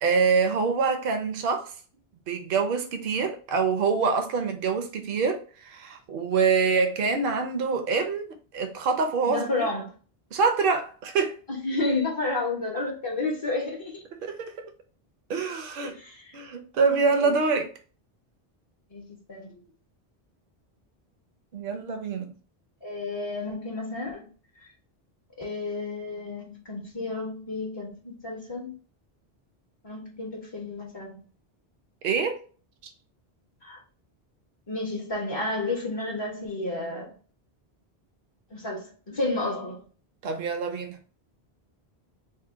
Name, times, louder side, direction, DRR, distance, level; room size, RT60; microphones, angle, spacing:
voice 1, 0.0-1.7 2.3-8.3 8.5-9.5 10.3-11.4 14.2-14.5 15.3-16.0 16.3-17.7 21.5-22.3 32.0-32.4 40.2-41.0, right 5 dB, 65° right, 0.7 m, -25 dB
voice 2, 9.3-9.9 11.5-14.0 15.8-16.4 17.2-17.3 18.9-19.6 22.8-24.3 24.6-24.7 25.4-28.7 29.8-31.1 33.6-33.8 34.7-37.1 38.5-39.8, left 2 dB, 35° left, 0.5 m, -31 dB
2.7 x 2.1 x 3.4 m
omnidirectional pair, 1.1 m